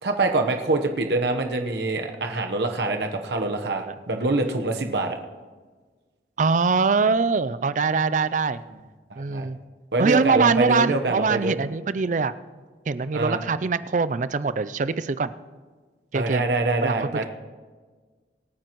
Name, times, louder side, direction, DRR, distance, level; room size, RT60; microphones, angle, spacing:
voice 1, 0.0-5.2 9.1-9.5 9.9-11.5 13.1-13.4 16.1-17.3, right 2 dB, 65° right, 4 dB, 1.1 m, -25 dB
voice 2, 6.4-8.6 9.2-9.6 10.0-12.3 12.9-15.3 16.1-16.4 16.8-17.3, right 4 dB, 45° right, 15 dB, 0.4 m, -23 dB
25.5 x 9.4 x 3.1 m, 1.4 s
head